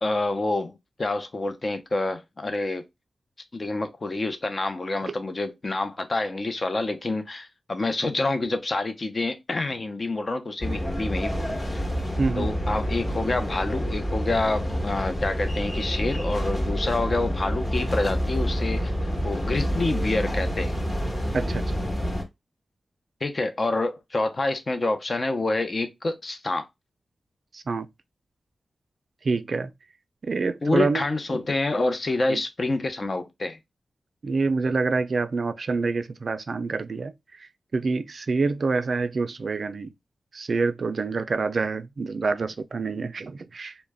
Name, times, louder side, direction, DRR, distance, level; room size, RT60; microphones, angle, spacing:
voice 1, 0.0-2.9 3.5-11.8 12.4-18.9 19.2-20.8 23.2-26.7 30.6-33.6, left 2 dB, 45° left, 0.6 m, -27 dB
sound 1, 10.6-22.2, equal, 30° left, 1.1 m, -28 dB
voice 2, 12.2-12.5 21.3-21.6 27.5-27.9 29.2-29.7 30.2-31.0 32.3-32.4 34.2-39.9 40.3-43.8, right 4 dB, 65° right, 0.3 m, -27 dB
2.3 x 2.1 x 3.3 m
cardioid pair, 60°, 0 cm